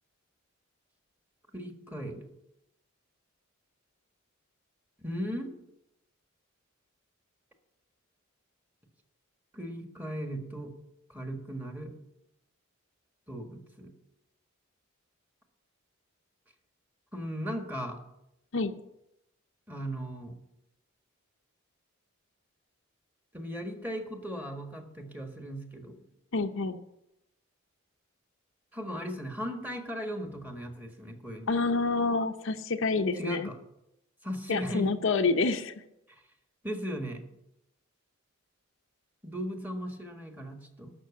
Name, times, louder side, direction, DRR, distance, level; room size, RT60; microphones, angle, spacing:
voice 1, 1.5-2.3 5.0-5.5 9.5-10.7 11.1-11.9 13.3-13.9 17.1-18.0 19.7-20.4 23.3-26.0 28.7-31.5 33.2-33.6 34.2-34.9 36.1-36.2 36.6-37.2 39.2-40.9, equal, 10° right, 4 dB, 1.6 m, -37 dB
voice 2, 26.3-26.8 31.5-33.5 34.5-35.7, left 3 dB, 65° left, 7 dB, 0.7 m, -28 dB
12.0 x 6.3 x 8.5 m, 0.85 s
head